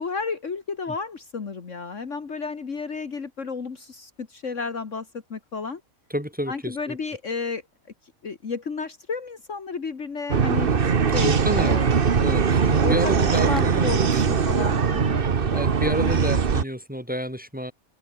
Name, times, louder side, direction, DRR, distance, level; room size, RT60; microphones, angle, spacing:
voice 1, 0.0-5.8 6.5-7.6 8.2-10.7 11.1-11.9 12.6-15.2 15.5-15.6, left 4 dB, 60° left, 2.1 m, -32 dB
voice 2, 6.1-7.0 11.2-11.8 12.2-14.3 15.5-17.7, equal, 5° right, 4.9 m, -30 dB
sound 1, 10.3-16.6, right 6 dB, 40° right, 1.3 m, -21 dB
open air
omnidirectional pair, 1.5 m